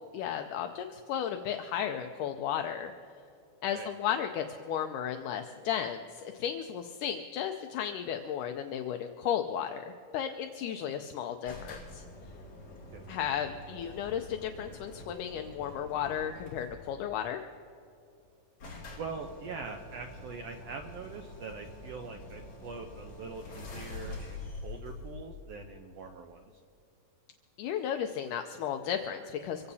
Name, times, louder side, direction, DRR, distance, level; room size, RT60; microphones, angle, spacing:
voice 1, 0.1-2.9 3.6-12.0 13.1-17.4 27.6-29.7, left 9 dB, 80° left, 5 dB, 2.1 m, -34 dB
sound 1, 11.5-17.0 18.0-18.1 18.2-18.3 18.6-26.1, left 2 dB, 40° left, 3.3 m, -46 dB
voice 2, 19.0-26.4, right 4 dB, 80° right, 4 dB, 1.4 m, -43 dB
25.0 x 16.5 x 2.8 m, 2.6 s
omnidirectional pair, 3.8 m